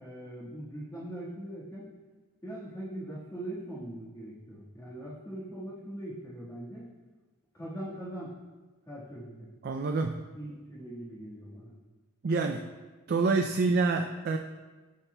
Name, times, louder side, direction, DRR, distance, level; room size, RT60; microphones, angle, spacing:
voice 1, 0.0-1.9 2.4-6.9 7.5-8.3 8.9-9.5 10.3-11.7, right 1 dB, 20° left, -8 dB, 1.5 m, -41 dB
voice 2, 9.6-10.2 12.2-12.7 13.1-14.4, right 3 dB, 50° right, 5 dB, 0.4 m, -27 dB
14.5 x 5.7 x 2.2 m, 1.3 s
head